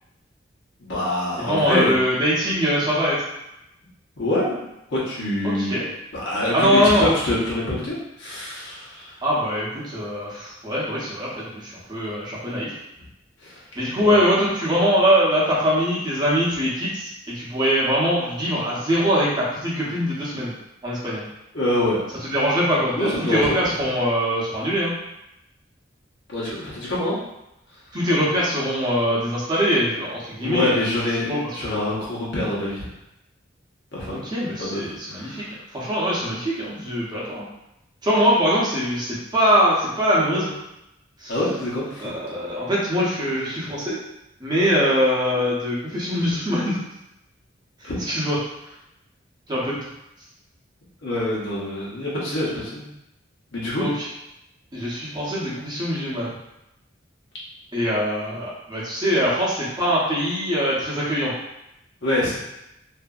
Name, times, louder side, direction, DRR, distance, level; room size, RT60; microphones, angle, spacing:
voice 1, 0.8-2.0 4.2-4.6 4.9-5.8 6.2-9.1 13.4-13.6 14.0-14.2 21.5-22.0 22.9-23.7 26.3-27.2 30.3-32.9 33.9-34.2 34.6-35.5 41.3-42.1 47.8-48.1 51.0-52.9 53.5-53.8 62.0-62.4, left 1 dB, 70° left, -7 dB, 1.0 m, -25 dB
voice 2, 1.4-3.2 5.4-5.9 6.5-7.1 9.2-12.7 13.8-20.5 20.8-21.2 22.3-24.9 27.9-30.8 31.2-31.4 31.6-31.9 34.1-35.4 35.7-37.5 38.0-40.5 41.2-41.3 42.0-44.0 44.4-46.8 47.8-48.4 49.5-49.8 53.7-53.9 54.7-56.3 57.7-61.3, equal, 20° right, -7 dB, 0.7 m, -22 dB
2.7 x 2.6 x 2.4 m, 0.87 s
head